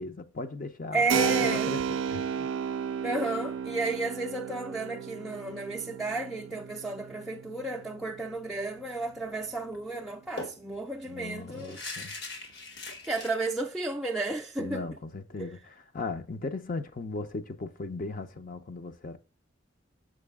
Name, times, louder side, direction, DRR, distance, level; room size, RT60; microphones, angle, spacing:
voice 1, 0.0-2.8 11.0-12.1 14.6-19.2, left 3 dB, 45° left, 0.7 m, -38 dB
voice 2, 0.9-1.7 3.0-11.8 13.0-14.9 15.4-15.5, right 2 dB, ahead, 0.4 m, -32 dB
Keyboard (musical), 1.1-9.5, right 7 dB, 90° right, 0.4 m, -34 dB
sound 1, 9.2-9.4 9.7-9.8 10.4-13.3, left 2 dB, 65° left, 1.6 m, -41 dB
6.4 x 4.8 x 3.5 m
head